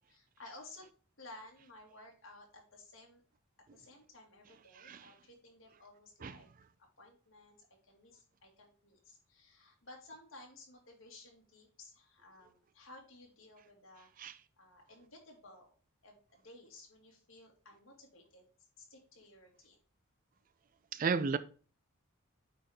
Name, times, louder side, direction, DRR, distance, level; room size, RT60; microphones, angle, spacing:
voice 1, 0.1-0.9 1.2-3.2 3.7-6.5 6.8-15.7 16.0-18.5 18.8-19.8, left 2 dB, 60° left, 2.2 m, -56 dB
voice 2, 20.9-21.4, right 5 dB, 40° right, 0.4 m, -32 dB
9.0 x 4.2 x 3.6 m
head